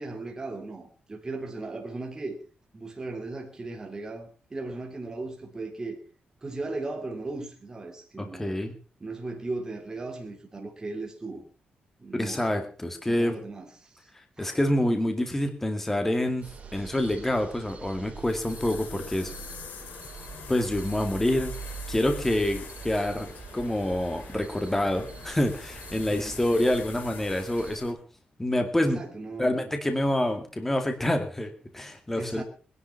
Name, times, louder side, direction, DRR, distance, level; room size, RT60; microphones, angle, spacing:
voice 1, 0.0-2.4 2.7-6.0 6.4-8.6 9.0-11.4 12.0-12.4 13.0-14.1 14.4-14.6 26.0-26.4 28.9-29.8 32.1-32.4, right 3 dB, 20° right, 2 dB, 2.9 m, -37 dB
voice 2, 8.2-8.7 12.2-13.4 14.4-16.5 16.7-19.3 20.5-21.5 21.9-23.3 23.5-28.0 28.4-29.0 29.4-32.4, left 1 dB, 10° left, 5 dB, 2.2 m, -27 dB
sound 1, 16.4-27.8, right 5 dB, 45° right, 4.6 m, -43 dB
sound 2, 16.7-27.9, left 6 dB, 80° left, 6.5 m, -45 dB
21.0 x 11.0 x 5.7 m, 0.38 s
wide cardioid pair, 140°, 3 cm